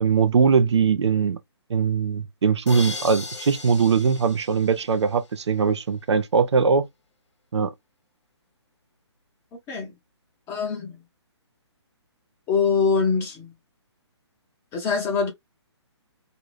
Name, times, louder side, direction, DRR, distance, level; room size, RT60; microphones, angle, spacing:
voice 1, 0.0-1.4 1.7-6.9 7.5-7.7, right 5 dB, 75° right, 0.4 m, -21 dB
sound 1, 2.7-5.5, left 3 dB, 75° left, 0.8 m, -37 dB
voice 2, 10.5-10.9 12.5-13.5 14.7-15.3, left 5 dB, 15° left, 0.6 m, -23 dB
2.6 x 2.5 x 3.1 m
figure-of-eight pair, 135°, 15 cm